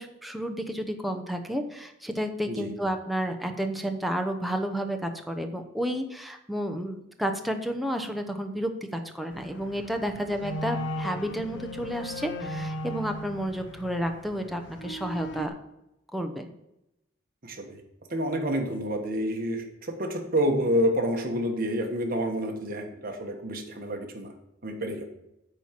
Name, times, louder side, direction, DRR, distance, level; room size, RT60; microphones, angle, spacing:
voice 1, 0.0-15.5 16.1-16.5, equal, ahead, 4 dB, 0.8 m, -31 dB
sound 1, 9.3-15.5, left 1 dB, 65° left, 0.8 m, -37 dB
voice 2, 17.4-17.8 18.1-24.3 24.6-25.0, equal, 45° right, 3 dB, 1.4 m, -28 dB
8.7 x 4.5 x 7.4 m, 0.88 s
head